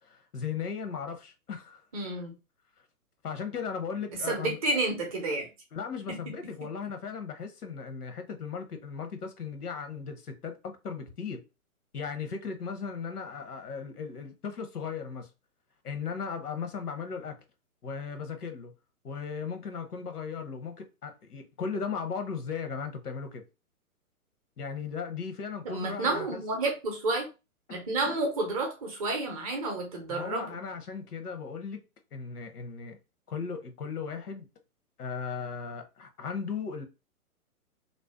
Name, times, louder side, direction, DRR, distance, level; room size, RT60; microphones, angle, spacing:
voice 1, 0.0-1.8 3.2-4.6 5.7-11.4 11.9-15.3 15.8-17.4 17.8-18.7 19.0-23.4 24.6-26.4 28.1-28.2 30.1-31.8 32.1-33.0 33.3-34.5 35.0-36.8, left 6 dB, 90° left, 0.8 m, -37 dB
voice 2, 1.9-2.3 4.3-5.5 6.1-6.2 25.6-27.3 27.7-30.5, right 2 dB, 25° right, 0.5 m, -30 dB
2.5 x 2.1 x 2.3 m
hypercardioid pair, 135°, 44 cm